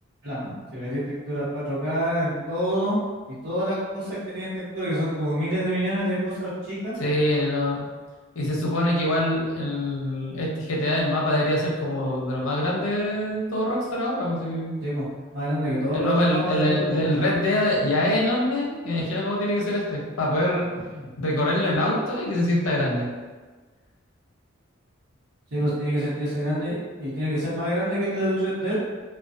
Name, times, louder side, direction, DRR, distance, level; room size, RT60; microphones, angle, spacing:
voice 1, 0.2-3.0 3.3-6.9 14.8-15.0 15.3-17.2 20.9-21.0 25.5-28.8, equal, 65° right, -14 dB, 0.9 m, -27 dB
voice 2, 7.0-7.8 8.3-14.7 15.9-20.7 21.2-23.1, left 1 dB, 80° left, -3 dB, 0.6 m, -24 dB
2.5 x 2.2 x 2.4 m, 1.3 s
head